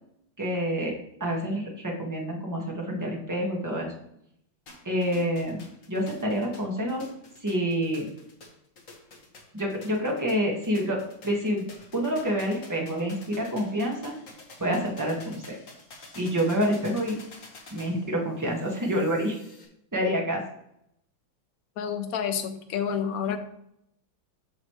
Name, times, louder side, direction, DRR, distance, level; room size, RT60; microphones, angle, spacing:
voice 1, 0.4-3.9 4.8-5.6 5.9-7.0 7.4-8.1 9.5-11.6 11.9-14.1 14.6-15.6 16.1-17.2 17.7-19.4 19.9-20.4, equal, 10° right, -1 dB, 1.5 m, -27 dB
sound 1, 4.7-19.7, left 2 dB, 45° left, 1.6 m, -49 dB
voice 2, 21.8-23.4, left 8 dB, 60° left, 7 dB, 1.0 m, -29 dB
8.3 x 6.5 x 3.2 m, 0.76 s
omnidirectional pair, 2.3 m